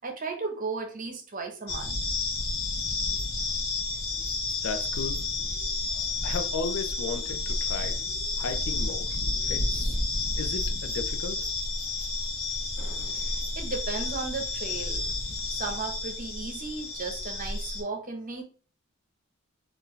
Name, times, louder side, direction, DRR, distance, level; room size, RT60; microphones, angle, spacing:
voice 1, 0.0-2.0 13.1-15.0 15.5-18.4, right 4 dB, 40° right, 0.9 m, -35 dB
sound 1, 1.7-17.8, left 2 dB, 45° left, 1.0 m, -31 dB
voice 2, 4.1-5.8 6.2-10.0 10.4-11.5, left 4 dB, 65° left, 0.5 m, -36 dB
4.5 x 2.6 x 3.1 m
head